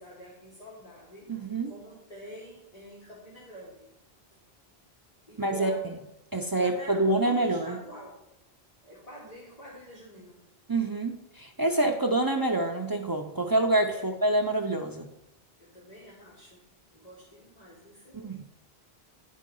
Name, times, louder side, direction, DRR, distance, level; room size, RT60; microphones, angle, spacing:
voice 1, 0.0-1.3 1.7-3.8 5.3-5.9 6.6-8.2 8.8-10.5 13.9-14.1 15.6-16.7 16.9-18.2, equal, 40° left, -6 dB, 1.7 m, -46 dB
voice 2, 1.3-1.7 5.4-6.0 6.3-7.8 10.7-15.1 18.1-18.5, right 2 dB, 30° right, 3 dB, 0.4 m, -27 dB
10.0 x 3.7 x 5.4 m, 0.87 s
omnidirectional pair, 1.0 m